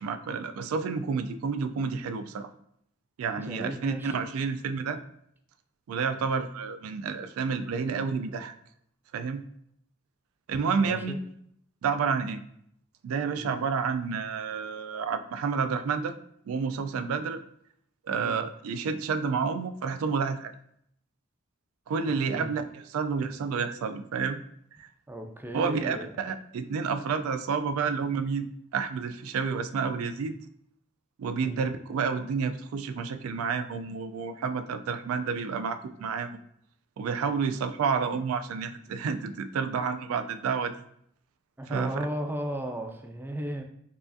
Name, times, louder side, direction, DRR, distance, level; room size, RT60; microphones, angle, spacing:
voice 1, 0.0-2.5 3.2-5.0 5.9-8.5 9.1-9.4 10.5-11.2 11.8-12.4 13.0-16.2 16.5-17.4 18.0-20.5 21.9-24.4 24.8-24.9 25.5-30.4 31.2-36.4 37.0-40.9 41.7-41.9, right 5 dB, 90° right, 9 dB, 0.3 m, -30 dB
voice 2, 3.4-4.1 10.8-11.2 13.4-13.6 18.1-18.3 22.1-22.5 25.1-26.1 31.4-31.7 41.6-43.6, right 1 dB, 10° right, 5 dB, 0.3 m, -36 dB
4.7 x 2.4 x 2.5 m, 0.69 s
head